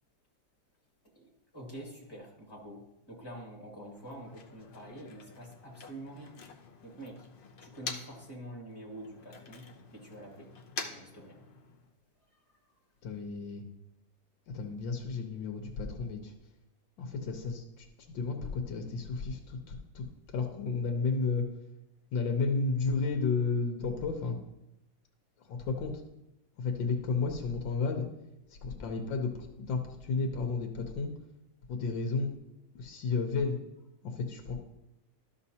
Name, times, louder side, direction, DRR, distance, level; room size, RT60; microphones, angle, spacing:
voice 1, 1.1-6.3 6.8-7.3 7.6-9.6 9.9-10.5 10.9-11.4 12.3-12.4, right 1 dB, 10° left, -3 dB, 2.0 m, -46 dB
Motor vehicle (road), 3.9-8.3 8.6-11.9, left 4 dB, 60° left, 0.5 m, -46 dB
voice 2, 13.0-13.6 14.5-16.3 17.0-20.0 20.3-21.4 22.1-24.4 25.5-25.9 26.6-28.1 28.6-31.1 31.7-32.4 32.8-33.6 34.0-34.6, left 4 dB, 80° left, 3 dB, 1.6 m, -32 dB
12.5 x 5.9 x 2.8 m, 0.87 s
omnidirectional pair, 2.0 m